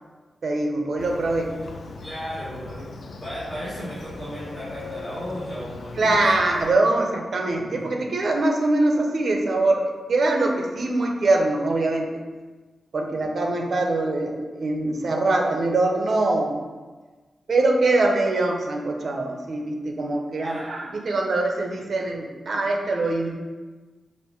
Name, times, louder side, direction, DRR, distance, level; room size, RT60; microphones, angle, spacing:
voice 1, 0.4-1.5 6.0-12.2 12.9-16.6 17.5-23.3, right 2 dB, 50° right, 1 dB, 0.6 m, -23 dB
Motorcycle, 1.0-6.7, left 3 dB, 65° left, 0.3 m, -39 dB
voice 2, 1.6-6.2 7.6-7.9 20.4-20.7, equal, 10° left, -12 dB, 1.2 m, -35 dB
5.8 x 2.5 x 3.6 m, 1.3 s
wide cardioid pair, 175°, 0 cm